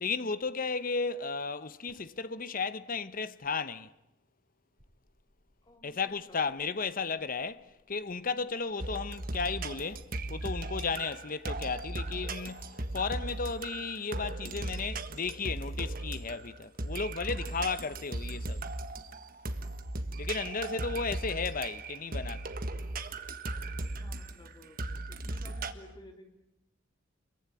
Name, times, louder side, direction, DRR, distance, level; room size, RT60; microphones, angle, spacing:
voice 1, 0.0-3.9 5.8-10.0 10.3-18.6 20.2-22.6, left 4 dB, 45° left, 0.9 m, -34 dB
sound 1, 1.9-10.0 10.4-10.6, left 2 dB, 85° right, 6.4 m, -68 dB
voice 2, 5.6-6.4 20.7-20.9 21.1-21.3 24.0-24.8 25.1-26.3, left 1 dB, 25° left, 3.9 m, -54 dB
sound 2, 8.8-25.7, right 2 dB, 50° right, 1.6 m, -37 dB
28.0 x 22.5 x 9.1 m
head